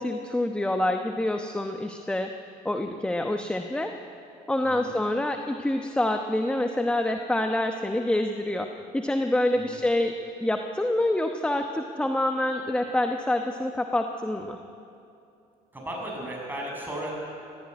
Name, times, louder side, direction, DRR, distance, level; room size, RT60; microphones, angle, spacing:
voice 1, 0.0-2.3 2.6-3.9 4.5-8.7 8.9-10.1 10.4-14.6, left 1 dB, 5° left, 5 dB, 1.0 m, -26 dB
voice 2, 4.6-4.9 9.5-9.8 15.7-17.1, right 1 dB, 10° right, -3 dB, 6.7 m, -35 dB
19.5 x 15.0 x 9.6 m, 2.7 s
cardioid pair, 110°, 17 cm